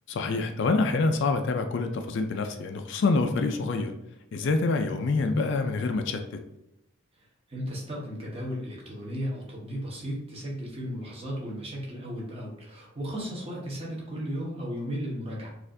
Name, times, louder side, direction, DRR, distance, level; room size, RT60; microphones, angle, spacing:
voice 1, 0.1-3.9 4.3-6.4, left 3 dB, 55° left, 6 dB, 0.3 m, -26 dB
voice 2, 7.2-15.5, equal, 25° right, -3 dB, 1.0 m, -35 dB
4.2 x 2.5 x 2.6 m, 0.85 s
head